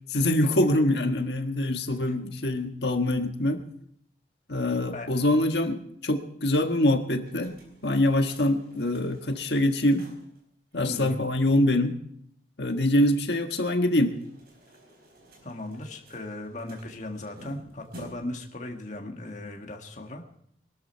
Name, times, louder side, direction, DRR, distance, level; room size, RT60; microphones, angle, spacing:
voice 1, 0.1-3.6 4.5-10.1 10.7-11.9 12.6-14.1, left 1 dB, 70° left, 5 dB, 1.5 m, -24 dB
sound 1, 7.1-10.4 10.7-10.8 11.1-11.2 13.9-18.5, right 1 dB, 55° right, 4.6 m, -51 dB
voice 2, 10.8-11.2 15.4-20.2, left 1 dB, 40° left, 2 dB, 1.7 m, -37 dB
21.5 x 12.5 x 4.5 m, 0.69 s
head